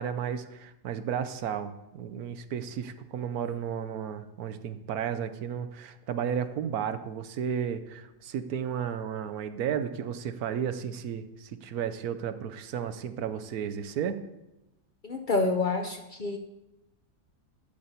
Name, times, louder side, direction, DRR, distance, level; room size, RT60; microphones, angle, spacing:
voice 1, 0.0-14.2, right 8 dB, 65° right, 11 dB, 1.1 m, -33 dB
voice 2, 15.0-16.4, left 3 dB, 70° left, 4 dB, 0.4 m, -28 dB
12.0 x 4.2 x 8.1 m, 0.95 s
omnidirectional pair, 1.8 m